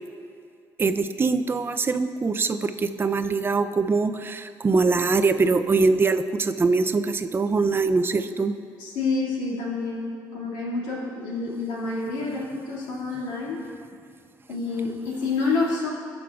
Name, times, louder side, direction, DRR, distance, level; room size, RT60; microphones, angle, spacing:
voice 1, 0.8-8.5, right 4 dB, 30° right, 10 dB, 0.4 m, -23 dB
voice 2, 8.8-13.6 14.5-15.9, left 3 dB, 80° left, -4 dB, 2.2 m, -28 dB
14.5 x 6.2 x 2.4 m, 2.4 s
supercardioid pair, 80°, 8 cm